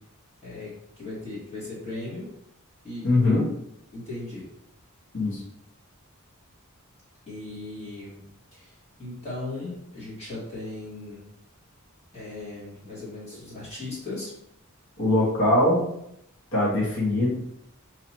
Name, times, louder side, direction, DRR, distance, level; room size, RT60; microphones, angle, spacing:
voice 1, 1.0-2.3 2.8-3.4 3.9-4.5 7.3-8.2 8.5-8.7 9.0-11.2 12.1-14.3, left 2 dB, 30° left, -7 dB, 1.4 m, -37 dB
voice 2, 3.0-3.4 5.1-5.4 15.0-15.9 16.5-17.3, left 1 dB, 60° left, -5 dB, 1.4 m, -21 dB
3.0 x 2.9 x 4.1 m, 0.76 s
head